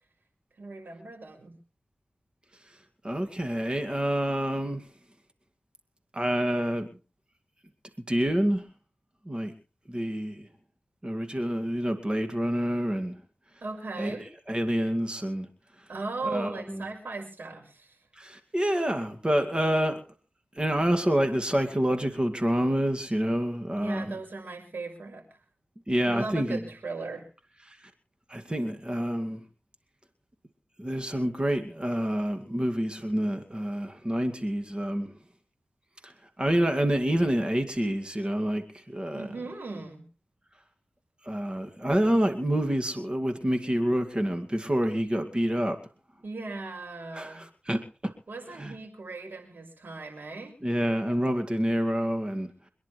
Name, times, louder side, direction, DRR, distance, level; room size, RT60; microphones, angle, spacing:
voice 1, 0.6-1.5 13.6-14.3 15.9-18.0 23.8-25.2 26.0-27.3 39.1-40.0 46.2-47.4 48.3-50.5, right 3 dB, 75° right, 3 dB, 6.1 m, -38 dB
voice 2, 3.0-4.9 6.1-6.9 8.1-8.6 9.3-9.5 9.9-10.5 11.0-13.2 14.0-14.1 14.5-15.5 16.2-16.9 18.2-20.0 20.5-24.2 25.9-26.7 27.7-27.9 28.3-29.4 30.8-35.1 36.0-39.2 41.2-45.8 47.1-48.1 48.5-48.7 50.6-52.5, equal, 30° right, 6 dB, 2.3 m, -27 dB
27.0 x 10.5 x 3.3 m, 0.35 s
cardioid pair, 50°, 3 cm